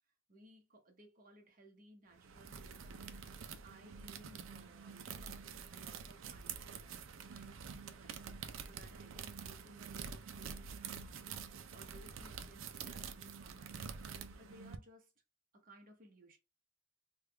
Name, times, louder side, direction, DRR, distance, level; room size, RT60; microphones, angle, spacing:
voice 1, 0.3-3.1 3.4-8.3 8.7-15.1 15.5-16.4, right 1 dB, 45° right, 1.0 m, -61 dB
sound 1, 2.1-14.8, right 6 dB, 75° right, 0.4 m, -47 dB
3.4 x 2.3 x 3.3 m
head